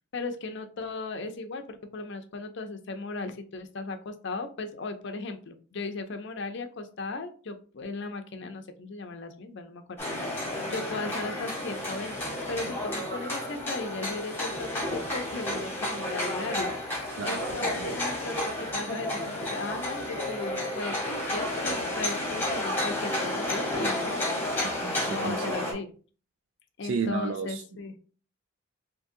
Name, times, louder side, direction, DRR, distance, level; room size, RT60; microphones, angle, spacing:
voice 1, 0.1-16.7 17.2-24.8 25.0-25.9 26.8-27.9, left 3 dB, 55° left, 8 dB, 0.5 m, -37 dB
sound 1, 10.0-25.7, left 1 dB, 10° left, 1.1 m, -31 dB
voice 2, 17.2-17.9 24.6-25.4 26.8-27.6, right 4 dB, 65° right, 5 dB, 0.4 m, -32 dB
3.6 x 2.8 x 2.6 m, 0.39 s
head